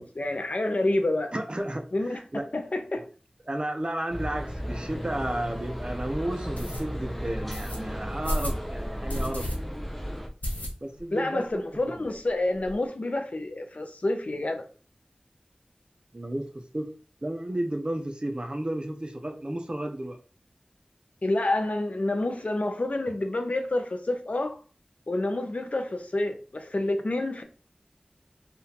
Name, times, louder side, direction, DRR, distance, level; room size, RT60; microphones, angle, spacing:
voice 1, 0.0-1.3 1.9-2.2 2.5-3.0 11.1-14.7 21.2-24.6 25.1-27.4, left 2 dB, 65° left, 0.5 m, -28 dB
voice 2, 1.3-2.5 3.5-9.9 10.8-12.0 16.1-16.9 17.2-20.2, right 1 dB, 40° right, 0.6 m, -33 dB
sound 1, 4.1-10.3, equal, 5° left, 0.5 m, -34 dB
sound 2, 5.1-5.2 5.7-5.8 6.5-6.8 7.5-7.8 8.2-8.6 9.1-9.5 9.9-10.0 10.4-11.1 11.4-11.5 11.8-11.9 12.1-12.7, left 1 dB, 80° left, 1.0 m, -32 dB
3.7 x 2.4 x 2.8 m
wide cardioid pair, 45°, 3 cm